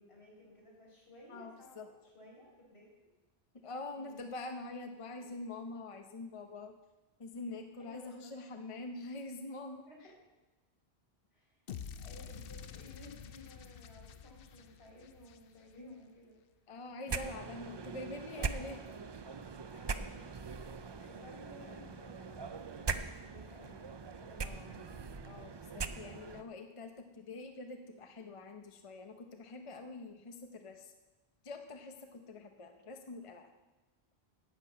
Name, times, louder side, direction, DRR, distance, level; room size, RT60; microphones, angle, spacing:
voice 1, 0.0-2.9 3.9-4.2 5.2-5.3 7.8-8.3 9.9-10.1 11.3-11.6 11.9-16.4 19.7-20.3 20.7-23.8 24.1-24.9, left 1 dB, 85° left, -5 dB, 4.6 m, -56 dB
voice 2, 1.3-1.9 3.6-6.7 7.2-9.8 15.8-16.0 16.7-18.8 24.4-24.7 25.3-30.9 31.4-33.5, left 2 dB, 35° left, 5 dB, 0.8 m, -45 dB
sound 1, 11.7-15.9, left 8 dB, 65° left, 0.8 m, -48 dB
sound 2, 17.1-26.4, right 5 dB, 40° right, 0.3 m, -41 dB
11.0 x 6.0 x 8.5 m, 1.1 s
omnidirectional pair, 1.0 m